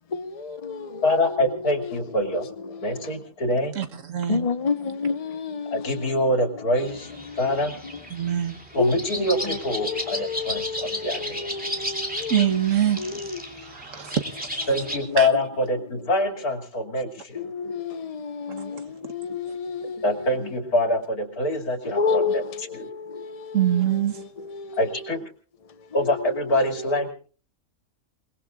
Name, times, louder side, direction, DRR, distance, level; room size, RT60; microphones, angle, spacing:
voice 1, 0.1-0.8 2.8-3.1 4.3-6.2 7.3-7.4 8.8-12.3 13.0-13.3 17.3-20.1 21.8-23.6 24.5-24.8, left 4 dB, 30° left, 0.9 m, -29 dB
voice 2, 1.0-2.5 2.8-3.8 5.7-7.1 7.4-7.7 8.7-11.5 14.7-17.4 20.0-22.9 24.8-25.2 25.9-27.1, left 1 dB, 85° left, 3.1 m, -25 dB
voice 3, 3.7-4.5 8.1-8.6 12.3-13.1 13.6-14.7 15.2-15.3 23.5-24.2, right 10 dB, 60° right, 1.6 m, -24 dB
sound 1, 6.9-15.0, equal, 5° right, 2.5 m, -34 dB
28.5 x 19.5 x 2.4 m
omnidirectional pair, 1.5 m